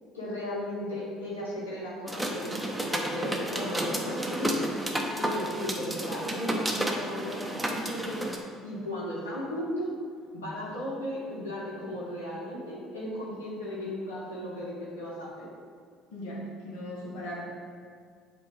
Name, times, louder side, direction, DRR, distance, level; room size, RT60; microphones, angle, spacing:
voice 1, 0.1-4.7 5.1-8.3 8.6-9.9 10.3-15.5, left 1 dB, 85° left, -7 dB, 1.2 m, -35 dB
sound 1, 2.1-8.4, right 1 dB, 10° right, 0.8 m, -32 dB
voice 2, 16.1-17.4, equal, 65° left, -4 dB, 1.2 m, -38 dB
7.5 x 2.8 x 5.0 m, 2.1 s
hypercardioid pair, 60°, 0 cm